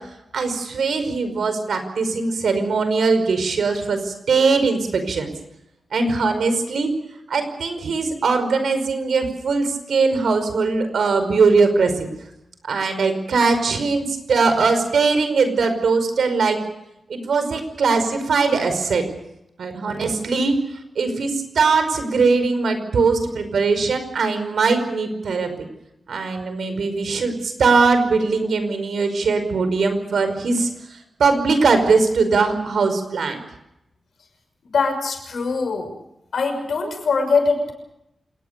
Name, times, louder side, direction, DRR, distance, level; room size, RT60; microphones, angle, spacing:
voice 1, 0.3-5.3 5.9-6.9 7.3-12.1 12.6-16.6 17.1-19.0 19.6-20.6 21.0-25.7 26.1-33.4, right 4 dB, 80° right, 8 dB, 5.3 m, -20 dB
voice 2, 34.6-35.9 36.3-37.7, left 4 dB, 75° left, 6 dB, 6.1 m, -22 dB
27.5 x 20.0 x 6.9 m, 0.85 s
wide cardioid pair, 170°, 0 cm